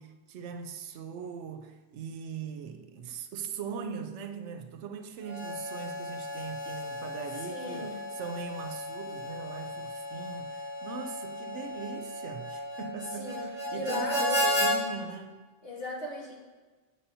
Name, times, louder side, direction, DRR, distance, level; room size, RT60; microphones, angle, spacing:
voice 1, 0.0-15.4, right 6 dB, 85° right, 0.9 m, -40 dB
Harmonica, 5.2-14.7, left 1 dB, 10° right, 1.7 m, -34 dB
voice 2, 7.5-8.0 13.1-13.5 13.7-14.5 15.6-16.3, left 1 dB, 60° left, 1.5 m, -37 dB
8.1 x 5.5 x 2.7 m
omnidirectional pair, 1.2 m